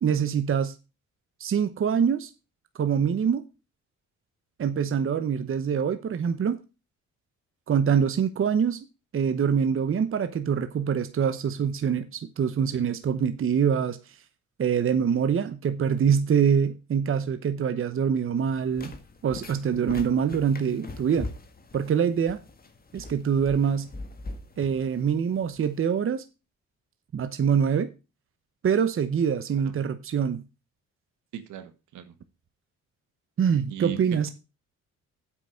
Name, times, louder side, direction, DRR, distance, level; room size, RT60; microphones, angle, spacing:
voice 1, 0.0-0.7 1.4-2.3 2.8-3.4 4.6-6.6 7.7-8.9 9.1-14.0 14.6-18.9 19.2-21.3 21.7-22.4 22.9-23.9 24.6-26.2 27.1-27.9 28.6-30.4 33.4-34.3, right 7 dB, 45° right, 1.0 m, -24 dB
sound 1, 18.4-25.8, left 2 dB, 30° left, 1.7 m, -42 dB
voice 2, 31.3-32.2 33.7-34.3, right 10 dB, 80° right, 1.5 m, -38 dB
8.2 x 6.0 x 6.3 m
cardioid pair, 90°, 30 cm